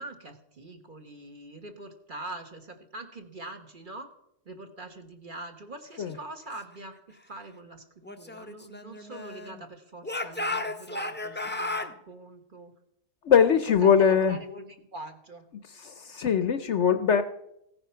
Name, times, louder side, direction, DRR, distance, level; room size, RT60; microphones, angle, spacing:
voice 1, 0.0-4.1 4.4-7.8 8.2-12.7 13.8-15.5, right 2 dB, 35° right, 5 dB, 1.4 m, -43 dB
Speech / Shout, 8.0-9.6 10.0-11.9, left 2 dB, 10° left, 0.5 m, -34 dB
voice 2, 13.2-14.4 15.7-17.2, left 7 dB, 60° left, 11 dB, 0.9 m, -22 dB
16.0 x 9.7 x 5.7 m, 0.79 s
omnidirectional pair, 1.5 m